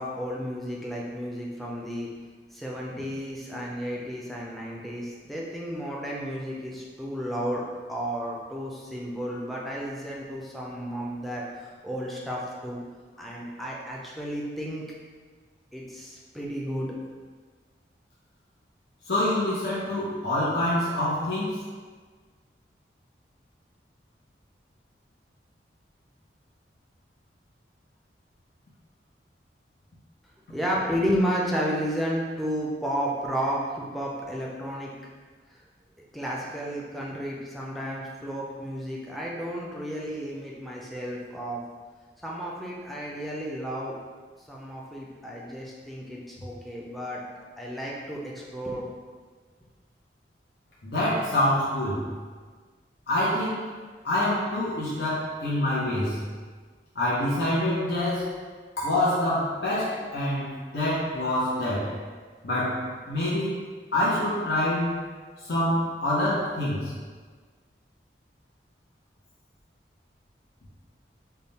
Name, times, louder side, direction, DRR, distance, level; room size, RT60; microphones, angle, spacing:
voice 1, 0.0-2.1 2.5-7.6 7.9-12.8 13.2-14.8 15.7-16.9 30.5-34.9 36.1-41.6 42.2-44.0 44.5-47.2 47.6-48.8, equal, ahead, -4 dB, 0.4 m, -32 dB
voice 2, 19.1-21.6 50.8-52.1 53.1-53.7 54.0-56.2 56.9-58.4 58.8-62.0 62.4-63.6 63.9-65.0 65.4-66.9, left 1 dB, 75° left, -8 dB, 0.7 m, -26 dB
3.5 x 2.3 x 4.0 m, 1.5 s
head